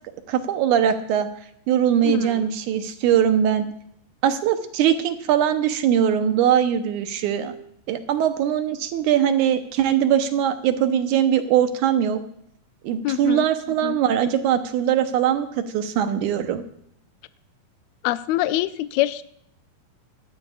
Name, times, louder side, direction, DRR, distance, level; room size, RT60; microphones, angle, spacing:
voice 1, 0.3-1.3 1.7-3.7 4.2-7.5 7.9-12.2 12.8-16.6, right 9 dB, 75° right, 8 dB, 2.3 m, -21 dB
voice 2, 13.0-13.4 13.8-14.0 18.0-19.2, left 15 dB, 85° left, 13 dB, 1.5 m, -24 dB
18.5 x 12.5 x 2.4 m, 0.70 s
omnidirectional pair, 3.7 m